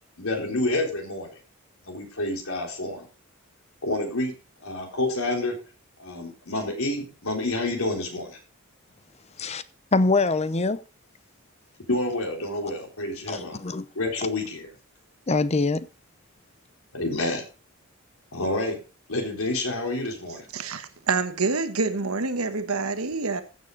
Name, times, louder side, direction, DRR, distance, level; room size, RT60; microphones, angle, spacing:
voice 1, 0.2-1.3 1.9-3.1 3.8-4.3 4.6-5.6 6.0-8.4 11.9-13.6 13.9-14.7 16.9-17.4 18.3-18.8 19.1-20.5, left 2 dB, 80° left, 3.8 m, -28 dB
voice 2, 9.9-10.8 13.3-13.9 15.3-15.9, left 3 dB, 30° left, 0.7 m, -23 dB
voice 3, 20.5-23.4, right 4 dB, 90° right, 1.2 m, -27 dB
15.0 x 7.2 x 3.9 m
head